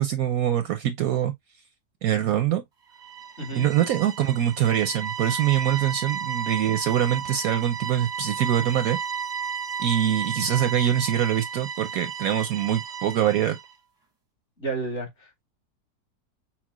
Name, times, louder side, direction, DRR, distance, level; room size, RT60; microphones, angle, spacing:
voice 1, 0.0-1.3 2.0-2.6 3.5-9.0 9.8-13.6, right 10 dB, 70° right, 0.9 m, -24 dB
sound 1, 2.9-13.7, right 7 dB, 20° right, 0.7 m, -33 dB
voice 2, 14.6-15.4, right 3 dB, 45° left, 2.7 m, -32 dB
5.9 x 2.2 x 2.9 m
omnidirectional pair, 1.8 m